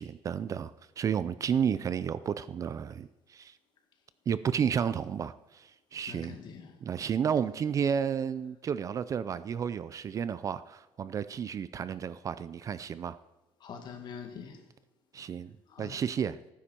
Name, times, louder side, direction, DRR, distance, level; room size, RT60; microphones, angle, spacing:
voice 1, 0.0-3.5 4.3-6.3 6.8-13.2 15.1-15.5 15.8-16.4, right 7 dB, 35° right, 0.4 m, -32 dB
voice 2, 6.1-6.8 13.6-14.6 15.7-16.0, left 6 dB, 45° left, 2.0 m, -44 dB
17.5 x 9.8 x 4.4 m
cardioid pair, 150°, 10 cm